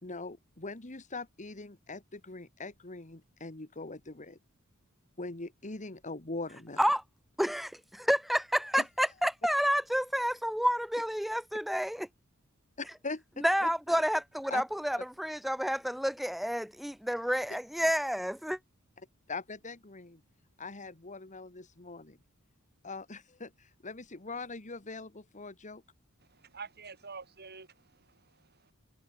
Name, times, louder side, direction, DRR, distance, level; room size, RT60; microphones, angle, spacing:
voice 1, 0.0-4.4 5.2-6.8 12.8-14.0 14.5-14.6 19.3-20.2 20.6-22.2 22.8-25.8, left 3 dB, 35° left, 2.0 m, -42 dB
voice 2, 7.4-12.1 13.4-18.6, equal, ahead, 0.4 m, -29 dB
voice 3, 26.3-28.7, right 5 dB, 50° right, 4.6 m, -48 dB
head